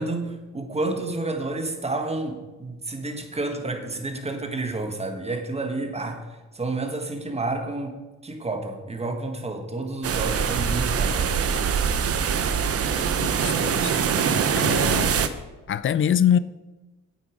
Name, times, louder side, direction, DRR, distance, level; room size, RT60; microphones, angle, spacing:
voice 1, 0.0-6.2 6.5-11.3, right 2 dB, 20° right, 5 dB, 1.6 m, -30 dB
sound 1, 10.0-15.3, right 7 dB, 50° right, 0.8 m, -23 dB
voice 2, 13.2-13.9 14.5-15.2 15.7-16.4, left 9 dB, 45° left, 17 dB, 0.5 m, -24 dB
8.5 x 8.4 x 5.1 m, 1.2 s
cardioid pair, 90°, 30 cm